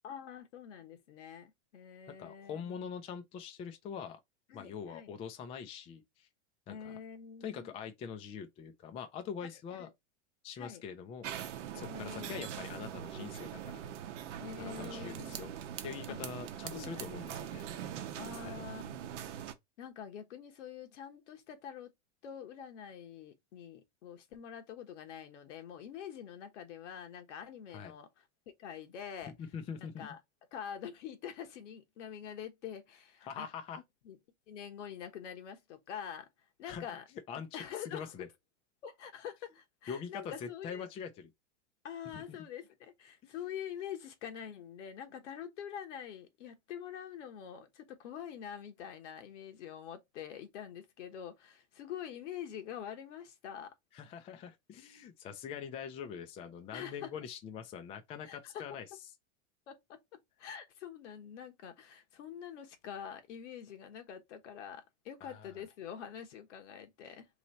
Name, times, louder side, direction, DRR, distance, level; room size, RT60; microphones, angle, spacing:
voice 1, 0.0-2.9 4.5-5.1 6.7-7.7 9.4-9.5 9.8-9.9 10.5-10.8 11.7-12.5 14.4-15.4 16.1-16.2 16.7-17.2 17.5-17.8 18.2-19.2 19.8-21.9 22.2-29.3 29.8-30.2 30.5-33.5 34.0-34.2 34.5-36.3 36.6-37.0 37.5-38.1 38.8-40.9 41.8-53.7 56.7-57.1 58.3-58.6 59.7-67.3, left 8 dB, 80° left, 1.2 m, -46 dB
voice 2, 2.1-4.2 4.5-6.3 6.7-7.0 7.4-9.9 10.4-11.3 11.7-13.8 14.6-15.5 15.8-17.7 18.3-18.6 27.7-27.9 29.4-30.1 33.3-33.8 36.7-36.8 37.3-37.5 37.9-38.3 39.9-41.3 42.1-42.4 43.2-43.3 53.9-58.9 65.2-65.7, left 7 dB, 15° left, 0.4 m, -43 dB
sound 1, 11.2-19.5, right 10 dB, 80° right, 0.8 m, -42 dB
3.2 x 2.9 x 4.0 m
supercardioid pair, 140°, 36 cm